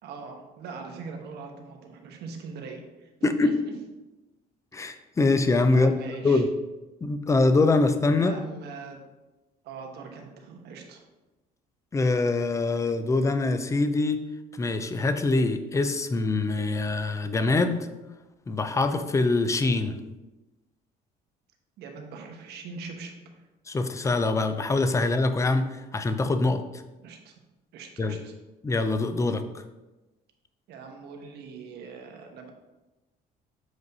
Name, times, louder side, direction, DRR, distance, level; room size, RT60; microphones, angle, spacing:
voice 1, 0.0-3.1 3.4-3.7 5.7-6.4 8.1-9.0 9.6-11.0 21.8-23.4 27.0-27.3 27.7-28.3 30.7-32.5, right 5 dB, 75° right, 3 dB, 1.1 m, -42 dB
voice 2, 4.7-5.9 6.2-6.5 7.0-8.3 11.9-14.2 14.5-17.9 18.5-19.9 23.7-26.6 28.0-28.2 28.6-29.4, left 3 dB, 20° left, 9 dB, 0.5 m, -24 dB
7.9 x 2.7 x 5.4 m, 1.1 s
cardioid pair, 110°, 17 cm